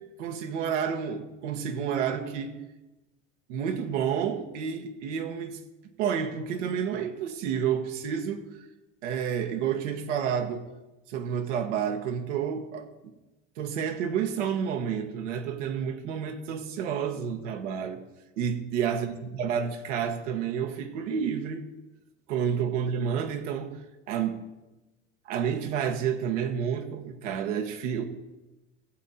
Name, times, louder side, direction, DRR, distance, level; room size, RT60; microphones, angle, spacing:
voice 1, 0.2-2.6 3.5-5.6 6.0-8.4 9.0-10.7 11.1-12.9 13.6-18.0 18.4-21.6 22.3-23.8 24.1-24.4 25.2-28.0, right 7 dB, 75° right, 5 dB, 1.6 m, -30 dB
16.0 x 7.7 x 4.3 m, 1.0 s
supercardioid pair, 110°, 37 cm